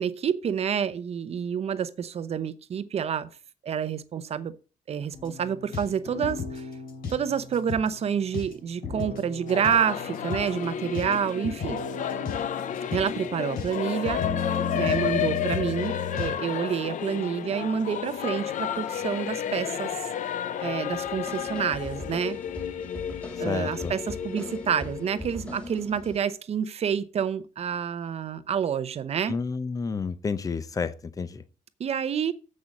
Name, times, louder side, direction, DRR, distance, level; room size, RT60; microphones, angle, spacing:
voice 1, 0.0-3.3 3.6-4.5 4.9-6.7 7.1-11.8 12.9-14.2 14.7-19.9 20.6-22.4 23.4-29.4 31.8-32.3, right 7 dB, 45° right, 0.7 m, -28 dB
sound 1, 5.1-16.3, left 5 dB, 80° left, 5.1 m, -35 dB
Singing / Musical instrument, 9.5-25.8, left 9 dB, 60° left, 0.7 m, -32 dB
sound 2, 20.9-26.2, left 1 dB, 10° left, 1.8 m, -41 dB
voice 2, 23.4-23.9 29.3-31.4, left 5 dB, 25° left, 0.6 m, -30 dB
7.6 x 6.4 x 7.1 m
cardioid pair, 160°, 15 cm